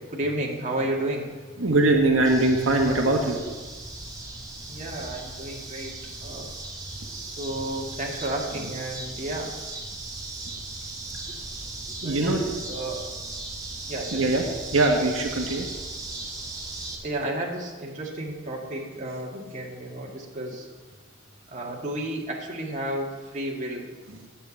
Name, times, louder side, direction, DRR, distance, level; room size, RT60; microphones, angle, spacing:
voice 1, 0.1-1.3 4.7-5.9 6.2-6.5 7.1-9.5 12.0-13.1 13.8-14.3 17.0-20.7 21.5-23.8, right 1 dB, 40° right, -1 dB, 2.0 m, -32 dB
voice 2, 1.6-3.4 12.0-12.5 14.1-14.4 14.7-15.7 24.1-24.2, right 2 dB, 85° right, 1 dB, 1.4 m, -22 dB
sound 1, 2.2-16.9, right 2 dB, 20° right, 2.2 m, -37 dB
9.2 x 7.1 x 8.5 m, 1.3 s
head